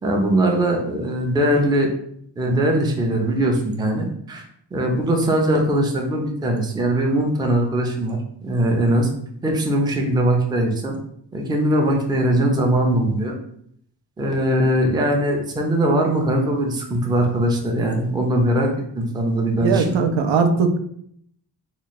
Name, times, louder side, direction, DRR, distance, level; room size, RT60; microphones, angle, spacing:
voice 1, 0.0-1.9 2.4-4.4 4.7-9.1 9.4-11.0 11.3-13.3 14.2-20.0, right 1 dB, 10° right, 1 dB, 0.4 m, -21 dB
voice 2, 19.6-20.8, right 5 dB, 85° right, 6 dB, 0.6 m, -19 dB
3.1 x 2.3 x 4.0 m, 0.68 s
wide cardioid pair, 180°, 43 cm